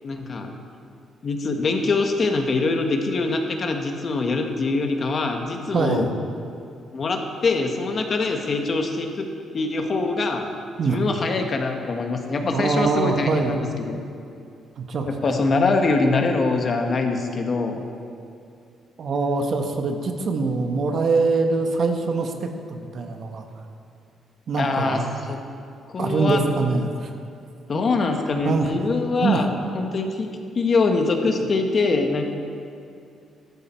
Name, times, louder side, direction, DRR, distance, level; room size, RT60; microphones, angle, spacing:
voice 1, 0.0-0.5 1.2-6.1 6.9-9.3 9.5-10.5 10.9-14.0 15.0-17.8 24.6-25.4 25.9-26.4 27.7-29.5 29.7-32.2, left 3 dB, 45° left, 4 dB, 1.5 m, -23 dB
voice 2, 5.7-6.1 10.8-11.0 12.5-13.6 14.8-15.1 19.0-23.5 24.5-25.1 26.0-27.1 27.7-27.8 28.4-28.7 29.2-29.4, right 4 dB, 55° right, 5 dB, 1.3 m, -23 dB
13.5 x 12.5 x 4.5 m, 2.4 s
cardioid pair, 90°, 0 cm